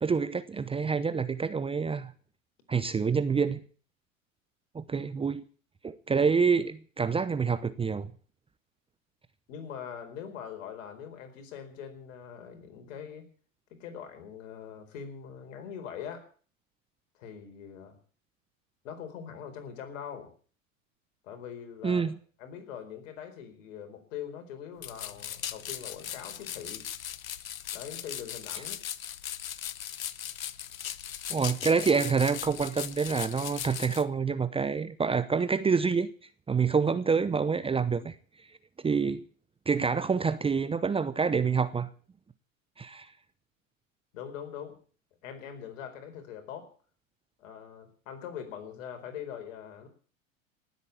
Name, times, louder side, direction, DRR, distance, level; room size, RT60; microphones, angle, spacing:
voice 1, 0.0-2.1 2.7-3.6 4.7-5.4 5.8-8.1 21.8-22.1 31.3-36.1 36.5-38.2 38.8-39.2 39.7-41.9 42.8-43.1, right 5 dB, 15° right, 0.8 m, -27 dB
voice 2, 9.5-13.2 13.7-16.3 17.1-18.0 18.8-20.3 21.2-22.0 22.4-26.9 27.7-28.8 44.1-44.8 45.2-46.7 47.4-49.9, left 8 dB, 65° left, 4.6 m, -42 dB
sound 1, 24.8-34.0, left 10 dB, 85° left, 0.9 m, -38 dB
18.5 x 8.3 x 8.6 m
hypercardioid pair, 90°, 40 cm